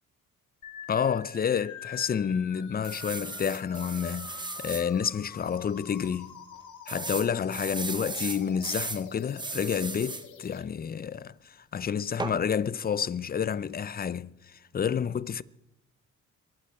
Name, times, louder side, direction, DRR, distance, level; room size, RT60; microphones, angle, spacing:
sound 1, 0.6-10.6, left 8 dB, 80° left, 2.1 m, -47 dB
voice 1, 0.9-6.4 6.9-15.4, left 7 dB, 30° left, 0.6 m, -29 dB
sound 2, 2.8-4.9 5.4-5.5 5.8-5.9 6.9-9.0 9.4-10.3 12.2-12.4, right 3 dB, 15° right, 0.8 m, -36 dB
24.0 x 11.5 x 4.4 m
cardioid pair, 90°, 30 cm